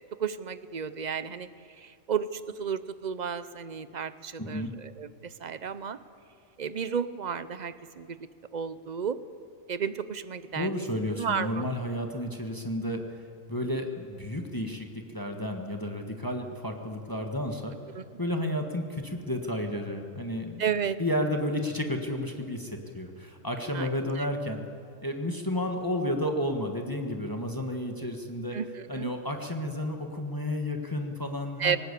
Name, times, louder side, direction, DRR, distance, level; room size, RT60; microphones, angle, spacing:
voice 1, 0.2-1.5 2.1-2.3 2.6-4.6 5.0-5.1 5.4-6.0 6.6-8.1 8.5-9.2 9.7-10.7 11.2-11.6 20.6-21.0 23.7-23.9 28.5-28.6 28.9-29.1 31.6-31.8, right 7 dB, 45° right, 13 dB, 0.6 m, -31 dB
voice 2, 4.4-4.7 10.5-13.2 13.5-17.8 18.2-20.7 21.0-24.6 25.0-28.6 28.9-31.8, left 1 dB, 15° left, 3 dB, 1.5 m, -32 dB
19.0 x 19.0 x 8.3 m, 2.3 s
omnidirectional pair, 1.4 m